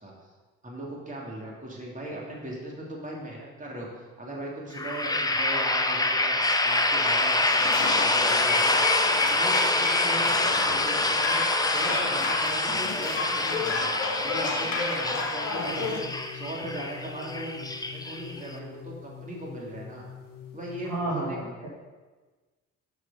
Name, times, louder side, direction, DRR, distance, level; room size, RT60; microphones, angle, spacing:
voice 1, 0.0-0.3 0.6-8.9 9.3-13.9 14.2-16.1 16.3-20.0 20.5-21.4, right 1 dB, 20° right, -3 dB, 2.7 m, -38 dB
sound 1, 4.7-18.5, left 2 dB, 10° left, 0.7 m, -26 dB
sound 2, 7.4-16.0, left 4 dB, 90° left, 1.0 m, -31 dB
sound 3, 15.8-21.0, left 8 dB, 55° left, 1.0 m, -44 dB
voice 2, 20.8-21.7, right 2 dB, 65° right, -4 dB, 2.2 m, -31 dB
7.3 x 6.0 x 5.4 m, 1.3 s
hypercardioid pair, 50°, 39 cm